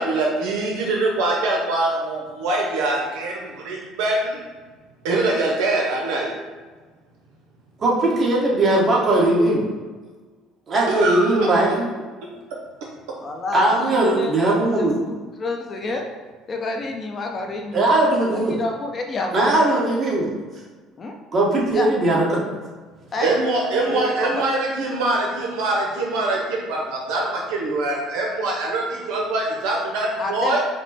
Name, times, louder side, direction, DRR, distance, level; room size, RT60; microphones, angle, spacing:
voice 1, 0.0-4.4 5.0-6.3 10.9-11.5 23.2-30.6, right 2 dB, 85° right, -2 dB, 0.7 m, -23 dB
voice 2, 7.8-9.7 10.7-11.9 13.5-15.0 17.7-18.6 19.3-20.3 21.3-22.4, right 2 dB, 35° right, -4 dB, 1.3 m, -19 dB
voice 3, 13.2-16.0 16.5-17.9 18.3-19.5 21.0-21.1 21.7-21.9 23.1-23.3 23.9-24.4 30.2-30.6, left 2 dB, 35° left, 3 dB, 0.6 m, -29 dB
5.2 x 2.1 x 4.1 m, 1.4 s
supercardioid pair, 95°, 0 cm